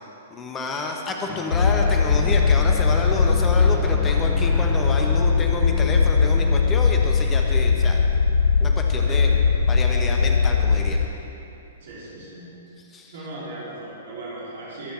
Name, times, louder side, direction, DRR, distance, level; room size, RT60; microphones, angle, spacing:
voice 1, 0.3-8.0 8.6-9.3 9.7-11.0 12.9-13.1, left 3 dB, 20° left, 1 dB, 1.3 m, -29 dB
Guitar, 1.3-8.9, left 1 dB, ahead, 0.4 m, -38 dB
sound 1, 1.5-11.1, left 5 dB, 75° left, 0.4 m, -19 dB
voice 2, 11.8-12.5 13.1-14.9, right 2 dB, 60° right, -7 dB, 3.5 m, -37 dB
22.0 x 8.3 x 4.4 m, 2.8 s
figure-of-eight pair, 110°, 0 cm